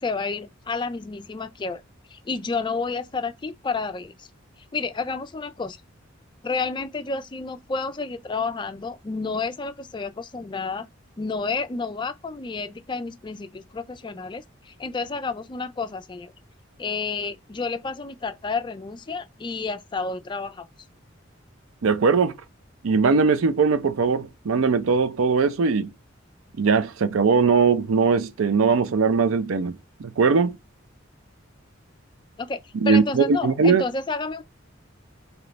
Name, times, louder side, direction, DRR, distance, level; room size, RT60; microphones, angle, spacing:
voice 1, 0.0-1.8 2.1-4.3 4.7-5.8 6.4-10.9 11.2-16.3 16.8-20.7 32.4-34.4, left 4 dB, 25° left, 0.3 m, -30 dB
voice 2, 21.8-22.3 22.8-25.9 26.6-30.6 32.8-33.8, right 5 dB, 90° right, 0.5 m, -20 dB
3.3 x 2.9 x 4.0 m
head